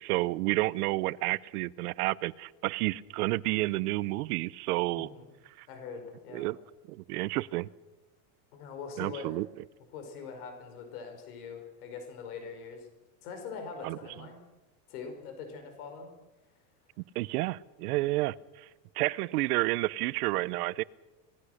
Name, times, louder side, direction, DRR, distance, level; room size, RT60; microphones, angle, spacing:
voice 1, 0.0-5.1 5.6-5.7 6.3-6.6 6.9-7.7 9.0-9.5 13.8-14.0 17.0-18.7 18.9-20.8, right 19 dB, 85° right, 20 dB, 0.9 m, -30 dB
voice 2, 5.0-5.3 5.7-6.5 8.5-9.4 9.9-12.9 13.2-14.4 14.9-16.1, left 5 dB, 85° left, 5 dB, 5.3 m, -42 dB
26.0 x 19.5 x 6.6 m, 1.1 s
supercardioid pair, 155°, 44 cm